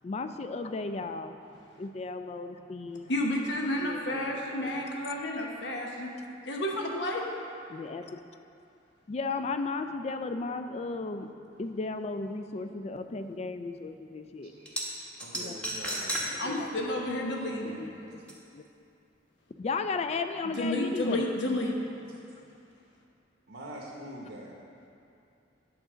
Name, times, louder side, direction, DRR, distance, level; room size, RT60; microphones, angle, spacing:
voice 1, 0.0-1.4 1.8-3.1 3.8-4.9 7.7-8.2 9.1-11.3 11.6-14.5 15.3-15.6 16.4-16.8 17.6-18.6 19.6-21.3 22.3-22.4, left 3 dB, 35° left, 8 dB, 0.3 m, -35 dB
voice 2, 3.1-6.1 6.5-7.2 16.4-17.8 20.6-21.7, left 1 dB, 75° left, 0 dB, 1.0 m, -31 dB
sound 1, 14.6-14.8 15.2-16.3 16.7-16.8 18.3-18.4, right 1 dB, 5° left, 0.9 m, -32 dB
voice 3, 15.2-17.1 17.5-18.2 23.5-24.5, right 1 dB, 75° right, -3 dB, 0.9 m, -45 dB
8.7 x 3.9 x 6.1 m, 2.6 s
head